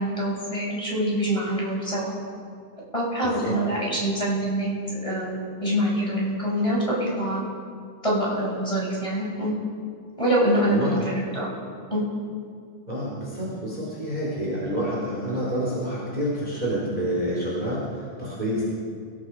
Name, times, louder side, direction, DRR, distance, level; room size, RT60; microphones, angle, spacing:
voice 1, 0.0-2.1 2.9-4.7 5.0-7.4 8.0-9.5 10.2-11.5 11.9-12.0, right 1 dB, 10° left, -6 dB, 6.9 m, -25 dB
voice 2, 3.2-3.6 10.7-11.0 12.9-18.6, equal, 10° right, -6 dB, 4.8 m, -28 dB
29.5 x 19.0 x 5.0 m, 2.2 s
omnidirectional pair, 3.6 m